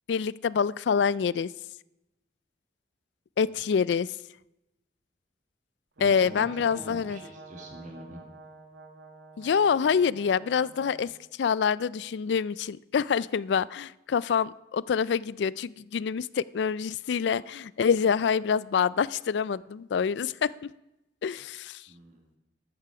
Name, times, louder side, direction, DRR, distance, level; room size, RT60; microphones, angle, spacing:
voice 1, 0.1-1.5 3.4-4.1 6.0-7.2 9.4-11.1 11.4-20.7 21.2-21.8, left 6 dB, 65° left, 21 dB, 0.3 m, -26 dB
voice 2, 6.0-8.2 21.9-22.4, right 1 dB, 40° right, 1 dB, 2.0 m, -45 dB
Brass instrument, 6.0-11.1, right 3 dB, 80° right, 1.5 m, -49 dB
13.5 x 12.5 x 4.8 m, 0.94 s
head